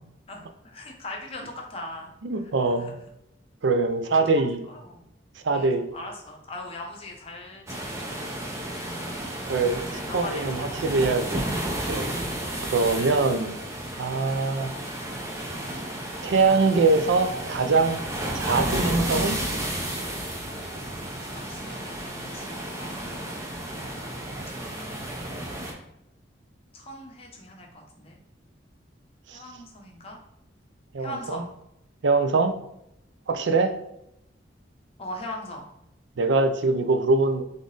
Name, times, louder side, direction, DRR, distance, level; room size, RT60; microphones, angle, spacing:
voice 1, 0.3-2.1 2.7-2.9 4.7-5.0 5.5-9.3 9.9-10.6 12.5-13.3 14.6-14.8 21.1-23.2 23.9-24.2 24.6-25.5 26.7-28.2 29.3-30.2 31.0-31.5 35.0-35.7, left 1 dB, 30° left, 1 dB, 0.8 m, -41 dB
voice 2, 2.2-2.9 3.6-4.6 5.4-5.9 9.5-11.5 11.9-12.1 12.7-13.6 13.9-14.7 16.2-18.0 18.3-19.4 29.3-29.4 30.9-31.4 32.0-32.5 33.3-33.7 36.2-37.4, right 3 dB, 75° right, 7 dB, 0.5 m, -23 dB
sound 1, 7.7-25.7, right 1 dB, 15° right, 0.6 m, -32 dB
3.8 x 3.6 x 3.8 m, 0.82 s
head